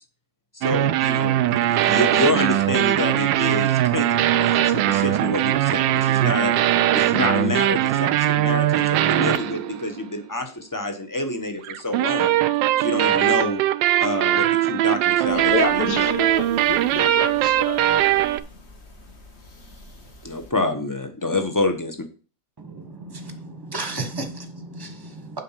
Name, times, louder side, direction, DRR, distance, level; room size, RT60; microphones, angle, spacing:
voice 1, 0.5-4.1 4.4-6.5 6.9-12.4 12.8-13.6 14.0-15.9 20.2-22.0, left 2 dB, 20° left, 0.6 m, -27 dB
sound 1, 0.6-10.1 11.6-18.4, right 13 dB, 85° right, 1.3 m, -20 dB
voice 2, 15.3-17.9, left 5 dB, 65° left, 1.9 m, -28 dB
sound 2, 15.3-20.5, left 1 dB, 40° left, 1.6 m, -46 dB
voice 3, 22.6-25.4, right 2 dB, 15° right, 1.1 m, -34 dB
7.7 x 5.6 x 5.7 m
omnidirectional pair, 2.0 m